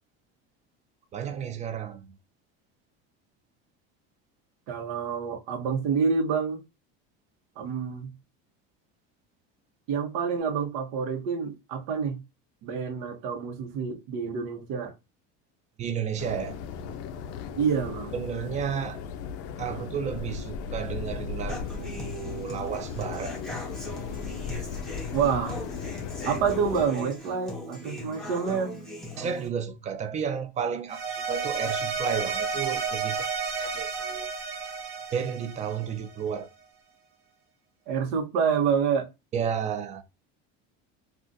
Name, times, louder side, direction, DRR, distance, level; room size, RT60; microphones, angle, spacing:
voice 1, 1.1-2.1 15.8-16.6 18.1-19.0 19.6-23.4 29.2-33.3 33.6-34.3 35.1-36.5 39.3-40.0, right 7 dB, 25° right, 0.4 m, -32 dB
voice 2, 4.7-6.6 7.6-8.1 9.9-12.2 12.6-14.9 17.6-18.1 25.1-25.6 26.2-28.7 37.9-39.1, right 6 dB, 70° right, 1.0 m, -27 dB
sound 1, 16.2-26.9, left 6 dB, 50° left, 0.4 m, -36 dB
Human voice / Acoustic guitar, 21.5-29.5, left 1 dB, ahead, 0.7 m, -39 dB
sound 2, 30.9-36.2, right 5 dB, 40° right, 1.2 m, -31 dB
3.5 x 2.4 x 2.6 m
cardioid pair, 150°, 31 cm